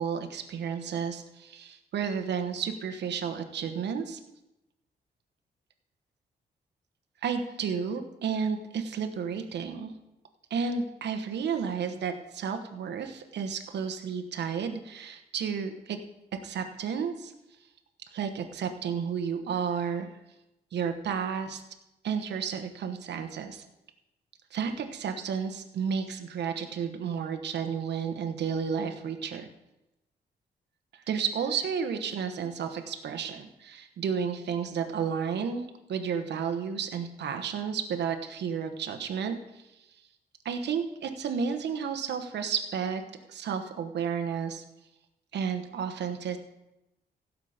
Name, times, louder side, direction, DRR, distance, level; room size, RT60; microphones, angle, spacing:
voice 1, 0.0-4.2 7.2-9.9 10.5-16.0 16.4-17.3 18.1-20.1 20.7-21.6 22.0-23.6 24.5-29.5 30.9-39.4 40.4-43.0 43.3-44.6 45.3-46.4, right 6 dB, 90° right, 6 dB, 1.2 m, -32 dB
16.5 x 7.5 x 5.1 m, 0.92 s
cardioid pair, 110°, 17 cm